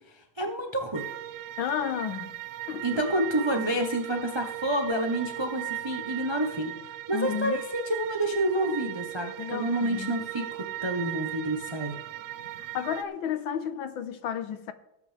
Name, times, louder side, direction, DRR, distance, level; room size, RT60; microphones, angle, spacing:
voice 1, 0.4-1.1 2.8-6.7 7.1-12.0, right 1 dB, 40° right, 0.4 m, -28 dB
sound 1, 0.9-13.0, right 14 dB, 70° right, 1.1 m, -38 dB
voice 2, 1.6-2.4 2.7-2.9 7.1-7.6 9.4-10.2 12.6-14.7, left 9 dB, 80° left, 1.6 m, -32 dB
18.0 x 8.6 x 3.3 m
omnidirectional pair, 2.2 m